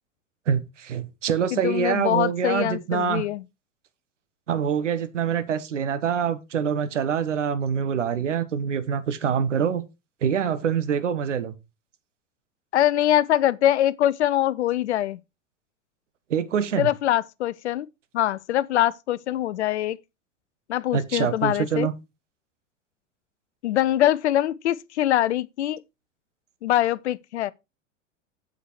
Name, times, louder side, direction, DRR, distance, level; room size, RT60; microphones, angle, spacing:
voice 1, 0.5-3.3 4.5-9.8 10.2-11.5 16.3-16.9 20.9-21.9, right 7 dB, 70° right, 1.3 m, -25 dB
voice 2, 1.5-3.4 12.7-15.2 16.8-17.9 18.1-20.0 20.7-21.9 23.6-25.8 26.6-27.5, left 12 dB, 60° left, 0.7 m, -23 dB
8.0 x 8.0 x 4.5 m
figure-of-eight pair, 85°, 38 cm